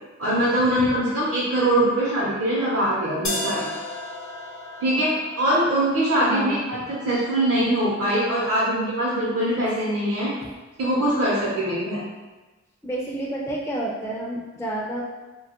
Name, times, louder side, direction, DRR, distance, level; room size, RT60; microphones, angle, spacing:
voice 1, 0.2-3.7 4.8-5.1 5.4-6.8 7.0-10.3 10.8-12.0, right 1 dB, 55° right, -8 dB, 0.7 m, -22 dB
sound 1, 3.2-9.2, left 2 dB, 70° left, 0.6 m, -36 dB
voice 2, 6.2-6.7 10.4-10.5 12.8-15.0, right 1 dB, 10° left, -3 dB, 0.4 m, -30 dB
3.0 x 2.2 x 2.8 m, 1.2 s
wide cardioid pair, 95°, 29 cm